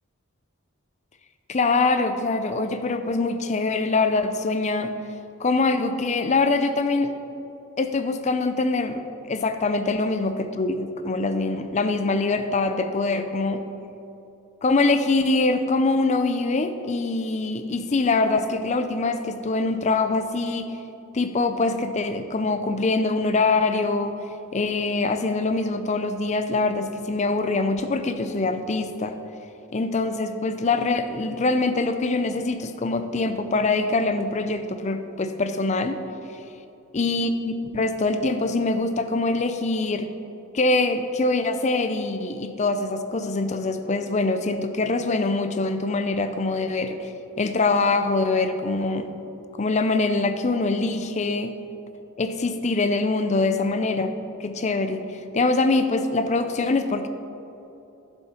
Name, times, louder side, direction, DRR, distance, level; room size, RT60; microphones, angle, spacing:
voice 1, 1.5-4.9 5.4-7.1 7.8-13.6 14.6-20.7 21.1-24.2 24.5-29.1 29.7-36.0 36.9-40.1 40.5-49.1 49.6-51.5 52.2-54.1 54.4-55.0 55.3-57.1, left 3 dB, 30° left, 8 dB, 0.5 m, -24 dB
11.5 x 7.0 x 4.4 m, 3.0 s
head